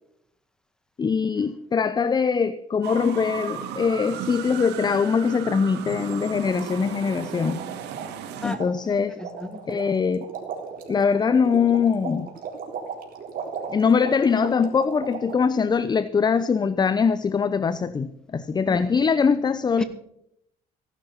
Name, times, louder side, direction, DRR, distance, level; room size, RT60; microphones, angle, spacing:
voice 1, 1.0-7.6 8.4-9.2 9.7-10.3 10.9-12.3 13.7-19.8, left 6 dB, 25° left, 0.6 m, -22 dB
sound 1, 2.8-8.6, right 8 dB, 85° right, 2.1 m, -35 dB
sound 2, 5.9-15.4, right 6 dB, 55° right, 3.9 m, -37 dB
voice 2, 8.8-9.8 18.7-18.8 19.8-19.9, left 1 dB, 5° left, 1.9 m, -35 dB
16.0 x 12.0 x 5.7 m
cardioid pair, 110°, 17 cm